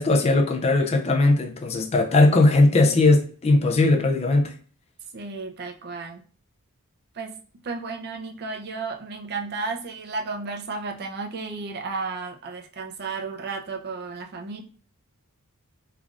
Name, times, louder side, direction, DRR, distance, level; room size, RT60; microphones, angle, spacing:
voice 1, 0.0-4.5, left 2 dB, 30° left, 0.4 m, -19 dB
voice 2, 5.1-6.2 7.1-7.4 7.6-14.6, right 4 dB, 45° right, 0.5 m, -33 dB
3.3 x 2.3 x 2.4 m
head